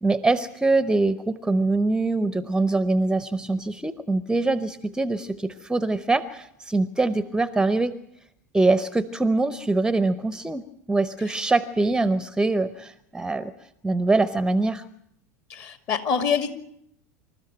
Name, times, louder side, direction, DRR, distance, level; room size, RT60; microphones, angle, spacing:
voice 1, 0.0-7.9 8.5-10.6 10.9-13.5 13.8-14.8, right 2 dB, 10° right, 15 dB, 0.8 m, -23 dB
voice 2, 15.5-16.5, left 6 dB, 40° left, 9 dB, 2.4 m, -25 dB
26.5 x 13.5 x 9.1 m, 0.74 s
figure-of-eight pair, 80°, 8 cm